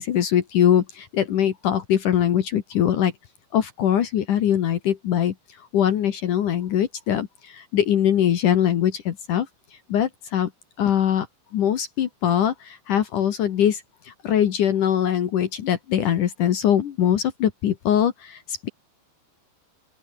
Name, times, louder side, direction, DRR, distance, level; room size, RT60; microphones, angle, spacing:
voice 1, 0.0-3.1 3.5-5.3 5.7-9.5 9.9-10.5 10.8-11.3 11.5-18.7, left 10 dB, 60° left, 2.4 m, -22 dB
open air
omnidirectional pair, 5.2 m